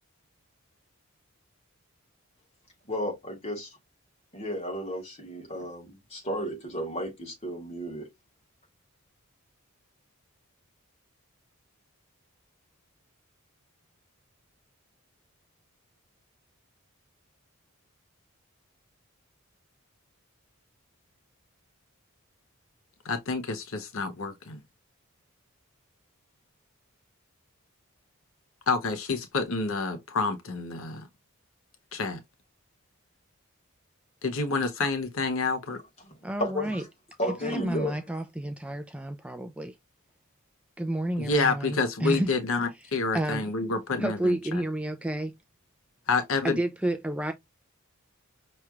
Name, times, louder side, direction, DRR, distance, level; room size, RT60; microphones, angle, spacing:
voice 1, 2.9-3.7 4.3-8.1 36.0-36.1 36.4-36.9 37.2-38.0, equal, 30° left, 1.8 m, -33 dB
voice 2, 23.0-24.6 28.7-31.1 31.9-32.2 34.2-35.8 41.2-44.6 46.1-46.6, left 3 dB, 65° left, 0.7 m, -28 dB
voice 3, 36.2-36.8 37.4-39.8 40.8-42.3 43.1-43.5 44.0-45.4 46.4-47.3, right 1 dB, 5° right, 0.3 m, -30 dB
5.7 x 3.1 x 2.4 m
head